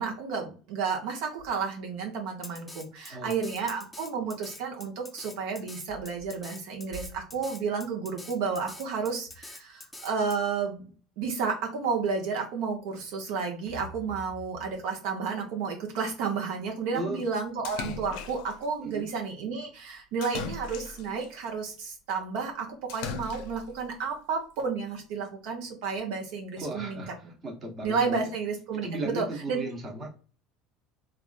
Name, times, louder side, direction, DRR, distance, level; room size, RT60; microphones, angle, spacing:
voice 1, 0.0-10.9 11.2-27.0 27.8-28.9 29.1-29.6, right 5 dB, 70° right, 1 dB, 0.8 m, -31 dB
Drum kit, 2.4-10.4, left 2 dB, 10° left, 0.4 m, -45 dB
voice 2, 16.9-17.2 18.8-19.0 26.6-28.2 28.7-30.1, right 2 dB, 30° right, 1 dB, 1.0 m, -36 dB
Splash splatter, 17.6-18.6 20.2-21.3 22.9-23.7, left 6 dB, 75° left, 0.5 m, -38 dB
3.3 x 2.4 x 2.4 m, 0.37 s
cardioid pair, 140°, 0 cm